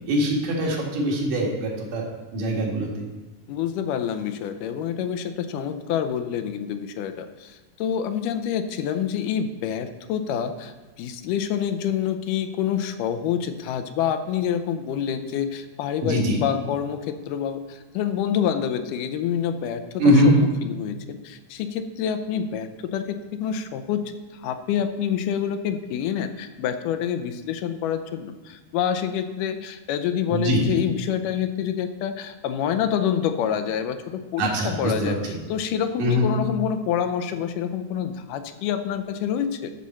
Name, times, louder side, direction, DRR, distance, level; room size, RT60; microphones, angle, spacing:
voice 1, 0.1-2.0 2.3-3.1 16.0-16.4 20.0-20.4 30.3-30.7 34.4-35.4 36.0-36.3, equal, 80° right, -2 dB, 3.3 m, -22 dB
voice 2, 3.5-39.7, left 8 dB, 90° left, 9 dB, 2.2 m, -27 dB
12.5 x 6.3 x 4.3 m, 1.2 s
omnidirectional pair, 3.7 m